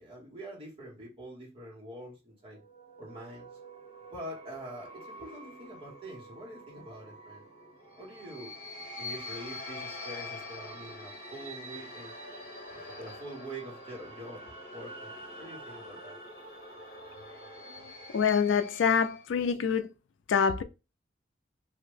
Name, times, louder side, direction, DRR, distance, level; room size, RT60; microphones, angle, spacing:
voice 1, 0.0-2.6 3.0-3.5 4.1-7.4 8.0-8.5 9.0-12.1 13.0-14.4 14.7-16.1, right 1 dB, 30° right, 1.4 m, -45 dB
sound 1, 2.5-19.3, left 1 dB, 50° left, 1.4 m, -45 dB
voice 2, 18.1-19.9 20.3-20.6, left 6 dB, 80° left, 0.3 m, -25 dB
2.9 x 2.6 x 3.2 m
head